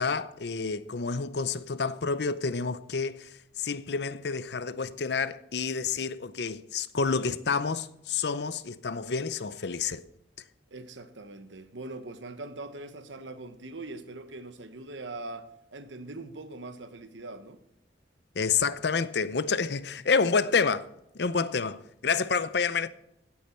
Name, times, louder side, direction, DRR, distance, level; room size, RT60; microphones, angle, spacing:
voice 1, 0.0-10.0 18.3-20.9 21.1-22.9, left 5 dB, 65° left, 0.6 m, -29 dB
voice 2, 10.7-17.6, right 2 dB, 85° right, 1.3 m, -42 dB
15.5 x 8.6 x 4.4 m
head